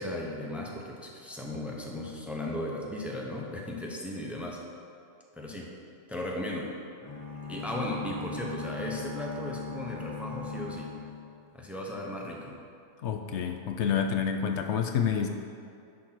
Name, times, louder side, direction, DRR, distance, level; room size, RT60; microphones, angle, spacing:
voice 1, 0.0-4.6 5.3-5.7 6.1-6.8 7.5-11.0 11.5-12.6, left 1 dB, ahead, -1 dB, 0.8 m, -36 dB
sound 1, 7.0-12.0, left 4 dB, 25° left, 0.5 m, -39 dB
voice 2, 13.0-15.3, left 7 dB, 70° left, 5 dB, 0.8 m, -28 dB
10.5 x 4.3 x 5.9 m, 2.5 s
omnidirectional pair, 1.3 m